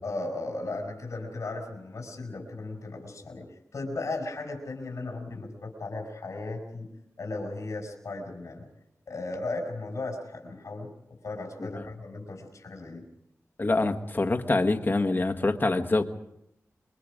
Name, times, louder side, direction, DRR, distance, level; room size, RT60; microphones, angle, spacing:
voice 1, 0.0-3.5 3.7-6.9 7.2-8.7 9.1-10.9 11.2-13.0, left 2 dB, 75° left, 2 dB, 5.3 m, -36 dB
voice 2, 13.6-16.1, left 2 dB, 40° left, 7 dB, 1.5 m, -25 dB
27.5 x 23.5 x 5.1 m, 0.83 s
wide cardioid pair, 120°, 6 cm